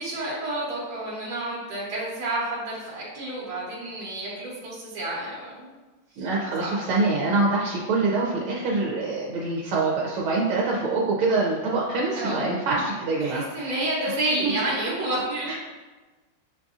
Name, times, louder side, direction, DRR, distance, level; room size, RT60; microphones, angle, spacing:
voice 1, 0.0-5.7 6.6-6.7 12.1-12.4 13.2-15.5, right 1 dB, 55° right, -8 dB, 1.5 m, -30 dB
voice 2, 6.2-13.8 14.4-14.5 15.4-15.5, right 3 dB, 85° right, -4 dB, 1.6 m, -25 dB
7.3 x 2.6 x 2.4 m, 1.2 s
omnidirectional pair, 2.2 m